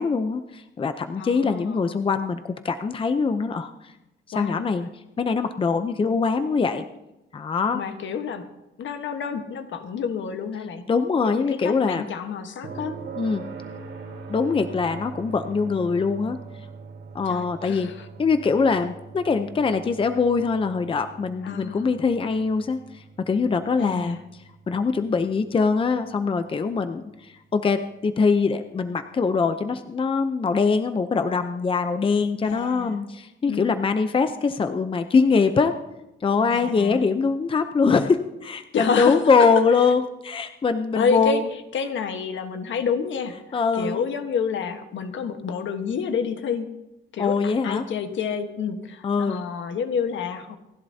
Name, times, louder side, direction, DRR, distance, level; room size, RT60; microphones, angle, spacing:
voice 1, 0.0-3.9 4.3-4.9 5.2-6.8 7.3-7.8 10.9-12.0 13.2-13.4 14.3-16.4 17.1-17.9 18.2-24.2 24.7-35.8 36.2-41.4 43.5-44.0 47.2-47.8 49.0-49.4, left 5 dB, 25° left, 9 dB, 0.7 m, -23 dB
voice 2, 1.2-2.0 4.3-4.7 7.7-8.5 8.8-10.8 11.2-13.0 17.2-18.1 21.4-21.8 23.8-24.2 32.4-33.0 33.5-33.8 36.5-37.0 38.7-39.2 39.7-39.9 40.9-46.7 47.1-50.6, left 6 dB, 70° left, 7 dB, 1.3 m, -29 dB
sound 1, 12.6-26.5 28.7-28.8, right 5 dB, 80° right, 4.0 m, -42 dB
28.0 x 11.0 x 2.8 m, 0.95 s
cardioid pair, 125°, 21 cm